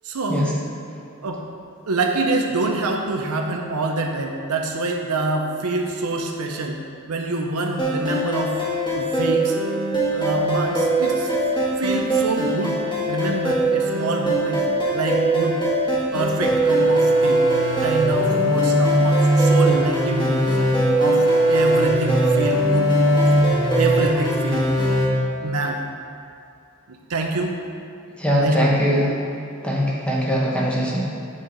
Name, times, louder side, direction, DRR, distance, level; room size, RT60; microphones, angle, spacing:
voice 1, 0.0-0.5 1.2-1.4 1.9-6.8 7.1-8.6 8.9-9.6 10.1-11.3 11.8-12.8 13.1-14.6 14.9-15.6 16.1-17.4 17.8-20.6 21.0-23.3 23.7-24.7 25.4-25.8 26.9-27.6 28.4-29.0 31.2-31.3, right 2 dB, 80° right, 2 dB, 0.7 m, -26 dB
sound 1, 7.8-25.1, right 1 dB, 20° left, 1.5 m, -20 dB
voice 2, 28.2-29.1 29.6-31.1, equal, 5° left, -5 dB, 1.1 m, -21 dB
7.6 x 6.4 x 4.0 m, 2.6 s
head